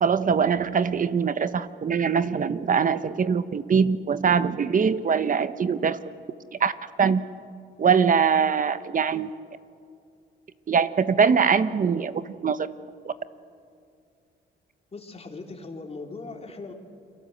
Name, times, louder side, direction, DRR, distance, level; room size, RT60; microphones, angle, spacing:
voice 1, 0.0-6.0 6.5-6.7 7.0-7.2 7.8-9.3 10.7-12.7 13.0-13.1, right 6 dB, 45° right, 12 dB, 1.2 m, -22 dB
voice 2, 14.9-16.7, left 3 dB, 30° left, 3 dB, 3.7 m, -39 dB
29.5 x 22.0 x 8.0 m, 2.4 s
cardioid pair, 90°, 20 cm